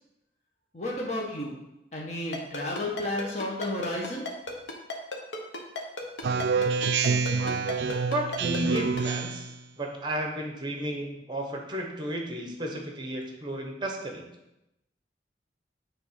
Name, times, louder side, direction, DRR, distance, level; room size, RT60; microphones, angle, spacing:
voice 1, 0.7-1.5 1.9-4.3, left 1 dB, 40° left, -3 dB, 1.1 m, -32 dB
Ringtone, 2.3-9.0, left 3 dB, 80° left, 1.1 m, -34 dB
Speech synthesizer, 6.2-9.6, right 5 dB, 75° right, 0.4 m, -27 dB
voice 2, 8.1-9.5 9.8-14.2, right 1 dB, 25° right, 2 dB, 0.9 m, -33 dB
7.4 x 3.5 x 5.8 m, 0.91 s
head